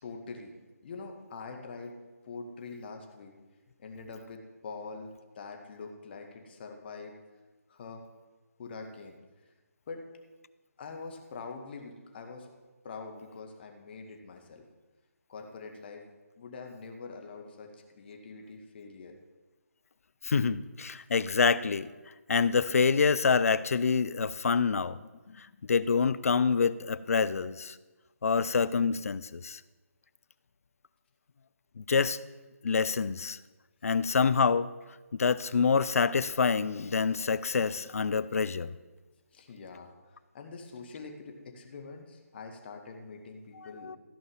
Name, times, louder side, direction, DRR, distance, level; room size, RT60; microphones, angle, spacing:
voice 1, 0.0-0.5 0.8-2.0 2.3-3.3 3.8-7.1 7.7-8.1 8.6-9.2 9.9-10.0 10.8-12.5 12.8-14.6 15.3-16.0 16.4-19.1 39.3-43.9, left 4 dB, 40° left, 3 dB, 1.9 m, -44 dB
voice 2, 20.2-21.9 22.3-25.0 25.4-27.7 28.2-29.6 31.8-32.2 32.6-33.4 33.8-34.7 35.1-38.7 43.8-44.0, left 5 dB, 65° left, 17 dB, 0.5 m, -26 dB
15.0 x 5.3 x 7.2 m, 1.2 s
figure-of-eight pair, 150°, 8 cm